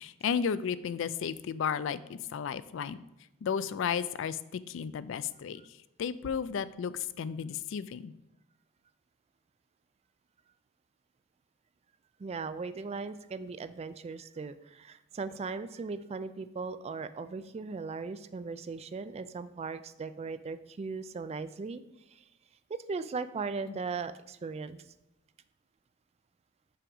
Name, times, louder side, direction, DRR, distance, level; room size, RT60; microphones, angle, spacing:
voice 1, 0.0-3.0 3.4-5.6 6.0-8.1, left 7 dB, 65° left, 15 dB, 0.4 m, -33 dB
voice 2, 12.2-21.8 22.1-22.2 22.7-24.8, right 4 dB, 30° right, 12 dB, 0.3 m, -38 dB
5.7 x 4.8 x 5.4 m, 0.90 s
head